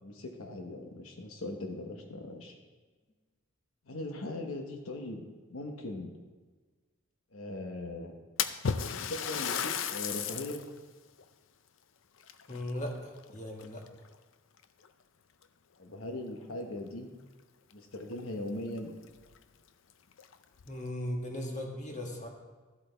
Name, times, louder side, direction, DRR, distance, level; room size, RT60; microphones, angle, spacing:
voice 1, 0.0-2.5 3.9-5.2 5.5-6.1 7.3-8.1 9.1-10.6 15.8-17.1 17.7-18.9, left 1 dB, 85° left, 3 dB, 1.2 m, -39 dB
Splash splatter, 8.4-10.7 11.2-11.3 12.2-13.2 13.6-14.1 14.9-15.0 15.4-15.5 17.7-17.8 18.1-18.2 18.8-18.9 19.3-19.4 20.1-20.7, left 7 dB, 65° left, 0.5 m, -34 dB
voice 2, 12.5-13.8 20.7-22.3, left 1 dB, 35° left, 1 dB, 1.5 m, -37 dB
12.5 x 8.2 x 3.4 m, 1.4 s
head